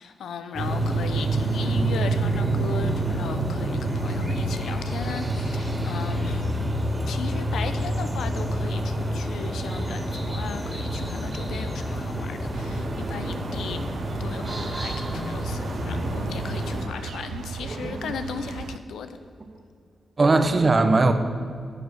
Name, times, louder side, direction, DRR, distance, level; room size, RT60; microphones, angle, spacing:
voice 1, 0.0-6.7 7.1-13.8 14.2-19.1, left 6 dB, 90° left, 9 dB, 0.7 m, -36 dB
sound 1, 0.5-16.8, right 1 dB, 25° right, 2.5 m, -27 dB
sound 2, 12.5-18.8, right 7 dB, 85° right, 0.3 m, -37 dB
voice 2, 17.7-18.1 20.2-21.1, right 3 dB, 45° right, 8 dB, 1.0 m, -20 dB
9.6 x 8.1 x 6.4 m, 2.3 s
cardioid pair, 60°, 0 cm